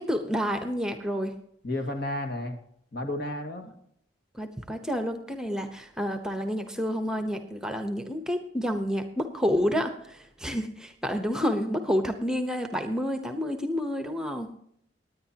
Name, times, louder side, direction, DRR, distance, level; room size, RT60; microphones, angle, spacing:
voice 1, 0.0-1.3 4.3-14.5, equal, 5° right, 7 dB, 0.9 m, -29 dB
voice 2, 1.6-2.6 2.9-3.7, left 1 dB, 55° left, 5 dB, 2.0 m, -32 dB
18.5 x 9.9 x 2.9 m, 0.69 s
head